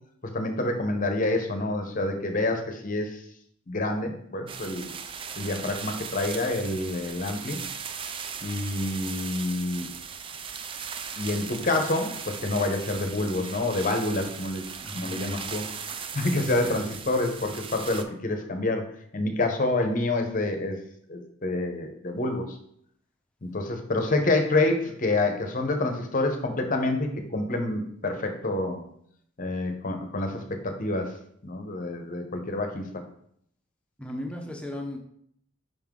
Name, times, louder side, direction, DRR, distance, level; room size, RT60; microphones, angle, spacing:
voice 1, 0.3-3.2 3.7-4.9 5.4-7.6 8.4-9.9 11.2-14.6 14.9-15.7 16.1-18.9 19.1-20.8 21.1-22.6 23.4-28.8 29.4-31.1 31.4-32.9, left 2 dB, 40° left, 5 dB, 0.8 m, -27 dB
sound 1, 4.5-18.0, right 6 dB, 25° right, 0.3 m, -38 dB
voice 2, 14.8-15.5 16.3-16.8 34.0-35.0, left 1 dB, 5° left, 0 dB, 0.8 m, -37 dB
5.5 x 5.3 x 3.7 m, 0.68 s
head